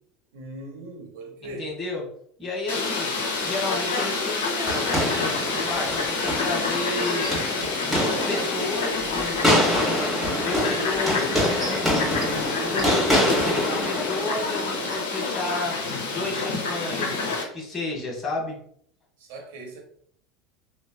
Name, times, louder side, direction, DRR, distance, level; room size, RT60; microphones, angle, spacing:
voice 1, 0.3-1.7 19.2-19.8, right 1 dB, 70° right, 0.8 m, -39 dB
voice 2, 1.4-2.1 2.4-3.2 3.4-7.3 7.8-10.0 10.4-15.8 16.1-18.6, left 2 dB, 25° left, 1.1 m, -32 dB
Fowl, 2.7-17.4, left 4 dB, 85° left, 0.6 m, -28 dB
sound 1, 4.7-15.0, equal, 5° right, 1.2 m, -26 dB
3.1 x 2.2 x 2.2 m
hypercardioid pair, 90°, 0 cm